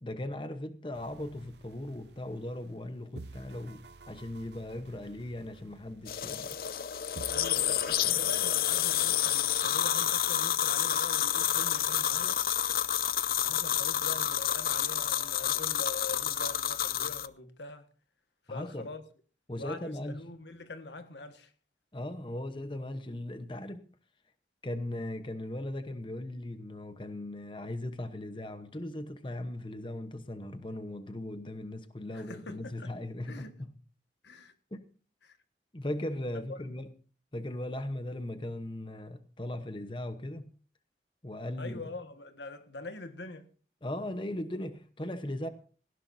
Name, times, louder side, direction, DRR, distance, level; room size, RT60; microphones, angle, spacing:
voice 1, 0.0-6.6 8.0-8.2 18.5-18.9 19.5-20.2 21.9-23.9 24.6-33.7 34.7-34.8 35.7-36.9 37.3-40.5 41.2-41.9 43.8-45.5, left 1 dB, 30° left, 0.9 m, -38 dB
sound 1, 0.9-2.8 3.1-6.8 7.1-8.1, right 3 dB, 75° right, 0.7 m, -51 dB
sound 2, 6.1-17.3, left 10 dB, 55° left, 0.6 m, -29 dB
voice 2, 7.3-12.4 13.4-17.9 18.5-19.0 19.5-21.5 32.1-32.9 33.3-33.5 34.2-34.5 35.2-35.4 36.3-36.6 41.6-43.5, left 2 dB, 85° left, 1.6 m, -44 dB
Trumpet, 11.2-16.7, right 3 dB, 30° right, 3.2 m, -58 dB
18.0 x 15.5 x 2.7 m
head